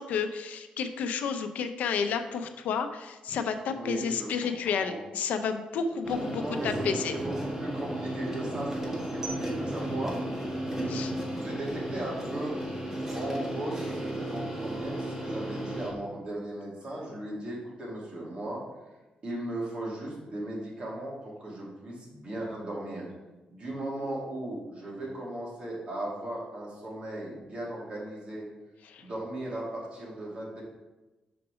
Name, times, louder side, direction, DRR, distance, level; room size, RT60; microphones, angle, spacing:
voice 1, 0.0-7.1 10.9-11.1 28.8-29.0, left 6 dB, 90° left, 7 dB, 0.6 m, -31 dB
voice 2, 3.7-5.0 6.1-6.9 7.1-10.2 11.4-12.5 13.1-18.6 19.2-23.0 23.5-28.5 29.0-30.6, right 1 dB, 40° right, -4 dB, 2.4 m, -37 dB
sound 1, 6.0-15.9, right 1 dB, 15° right, 1.5 m, -34 dB
6.0 x 5.0 x 4.8 m, 1.1 s
cardioid pair, 135°, 3 cm